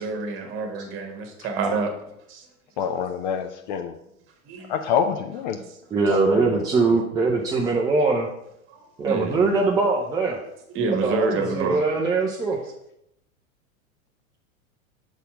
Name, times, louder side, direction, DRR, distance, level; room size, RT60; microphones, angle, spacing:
voice 1, 0.0-1.9 2.3-2.5 2.8-2.9 4.4-4.7 8.7-9.4 10.7-11.8, right 3 dB, 30° right, 1.4 m, -27 dB
voice 2, 2.8-3.9 4.7-5.6 6.1-7.0, left 7 dB, 35° left, 0.5 m, -27 dB
voice 3, 5.9-8.3 9.0-10.4 10.9-12.6, right 3 dB, 10° right, 0.5 m, -22 dB
7.0 x 4.2 x 4.9 m
figure-of-eight pair, 90°, 41 cm